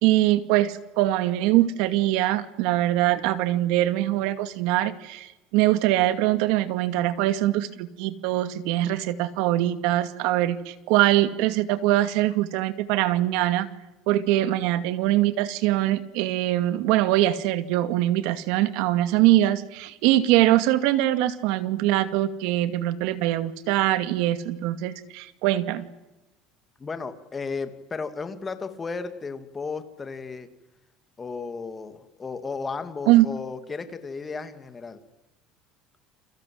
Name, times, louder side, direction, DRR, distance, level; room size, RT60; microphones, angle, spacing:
voice 1, 0.0-13.7 14.1-25.9 33.1-33.3, right 15 dB, 75° right, 12 dB, 2.3 m, -23 dB
voice 2, 26.8-30.5 31.2-35.0, left 4 dB, 20° left, 9 dB, 2.7 m, -34 dB
29.5 x 24.0 x 8.0 m, 0.99 s
cardioid pair, 145°, 0 cm